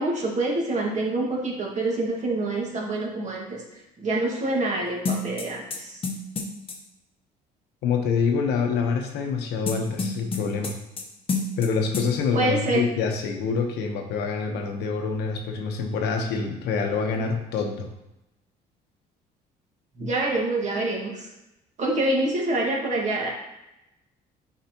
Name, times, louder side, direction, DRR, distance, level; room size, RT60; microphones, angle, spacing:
voice 1, 0.0-3.6 4.0-5.9 12.3-12.8 20.0-21.3 21.8-23.3, right 2 dB, 45° right, -2 dB, 1.8 m, -26 dB
sound 1, 5.0-6.8 9.7-11.0 11.3-11.7 11.9-12.1, left 3 dB, 35° left, 1.0 m, -28 dB
voice 2, 7.8-10.8 11.6-17.9, left 5 dB, 85° left, 3 dB, 1.0 m, -26 dB
8.0 x 4.9 x 3.0 m, 0.92 s
cardioid pair, 110°, 17 cm